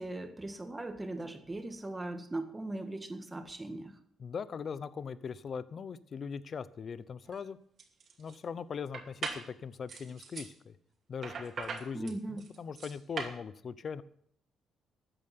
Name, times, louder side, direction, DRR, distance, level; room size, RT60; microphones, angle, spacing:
voice 1, 0.0-4.0 11.9-12.4, right 2 dB, 15° right, 7 dB, 1.8 m, -39 dB
voice 2, 4.2-7.6 8.2-10.8 11.1-14.0, left 6 dB, 50° left, 15 dB, 0.8 m, -40 dB
sound 1, 7.2-7.4 7.8-8.4 8.9-9.5 9.9-10.5 11.2-13.4, right 5 dB, 55° right, 2.6 m, -40 dB
13.5 x 8.9 x 6.1 m, 0.66 s
cardioid pair, 90°, 0 cm